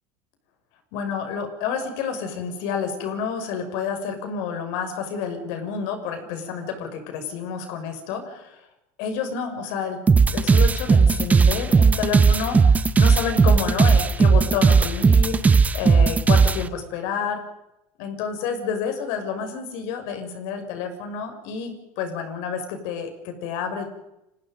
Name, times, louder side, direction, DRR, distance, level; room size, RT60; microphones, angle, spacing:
voice 1, 0.9-8.5 9.0-10.0 10.3-17.4 18.0-23.9, left 6 dB, 65° left, 6 dB, 6.4 m, -29 dB
sound 1, 10.1-16.6, right 5 dB, 20° right, 1.2 m, -16 dB
30.0 x 21.5 x 5.3 m, 0.87 s
supercardioid pair, 115°, 8 cm